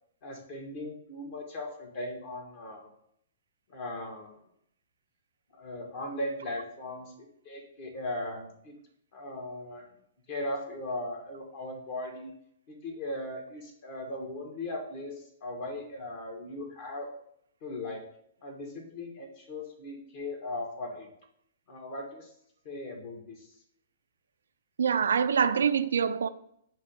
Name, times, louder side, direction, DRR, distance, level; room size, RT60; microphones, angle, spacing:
voice 1, 0.2-2.9 3.7-4.4 5.5-8.7 9.1-9.9 10.3-12.3 12.7-17.1 17.6-18.0 18.4-21.1 21.7-22.3 22.6-23.5, left 1 dB, 45° left, 2 dB, 1.7 m, -38 dB
voice 2, 24.8-26.3, right 7 dB, 65° right, 11 dB, 0.3 m, -25 dB
7.4 x 3.1 x 5.2 m, 0.70 s
figure-of-eight pair, 115°, 0 cm